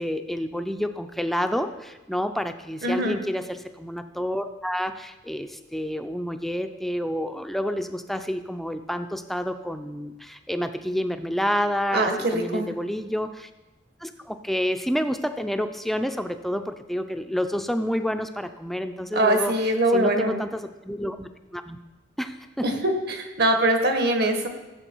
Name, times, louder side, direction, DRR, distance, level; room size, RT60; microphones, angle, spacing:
voice 1, 0.0-13.5 14.0-21.8 22.2-22.7, equal, ahead, 8 dB, 0.5 m, -29 dB
voice 2, 2.8-3.2 11.9-12.7 19.1-20.4 22.6-24.5, right 1 dB, 55° right, 5 dB, 1.5 m, -22 dB
15.0 x 7.5 x 4.6 m, 1.1 s
head